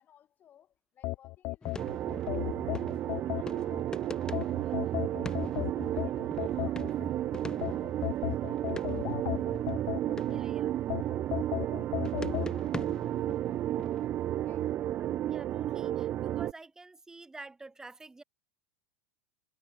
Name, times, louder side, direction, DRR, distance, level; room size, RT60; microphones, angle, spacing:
voice 1, 0.0-9.6 9.9-14.0 14.4-14.8, left 10 dB, 35° left, 4.2 m, -63 dB
sound 1, 1.0-3.8 4.3-7.1 7.6-10.4 10.9-12.5, left 22 dB, 50° left, 0.3 m, -35 dB
sound 2, 1.6-11.7 12.0-14.7, left 3 dB, 15° left, 2.3 m, -46 dB
sound 3, 1.8-16.5, right 12 dB, 40° right, 0.7 m, -32 dB
voice 2, 10.3-10.8 14.9-18.2, right 3 dB, 10° right, 2.5 m, -49 dB
hypercardioid pair, 105°, 5 cm